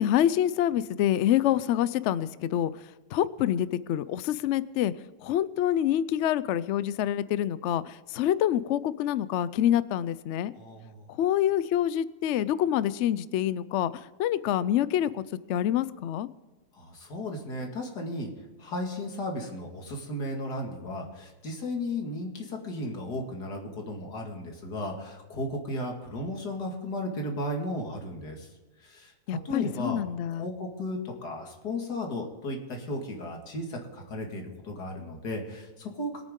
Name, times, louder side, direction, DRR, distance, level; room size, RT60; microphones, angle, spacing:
voice 1, 0.0-2.7 3.1-4.9 5.2-10.5 11.2-13.9 14.2-15.2 15.5-16.3 29.3-30.5, left 11 dB, 70° left, 17 dB, 0.7 m, -26 dB
voice 2, 10.5-11.1 16.7-18.3 18.6-28.5 28.8-30.0 30.3-36.2, left 1 dB, 85° left, 2 dB, 2.6 m, -35 dB
22.0 x 9.0 x 3.7 m, 1.3 s
omnidirectional pair, 1.7 m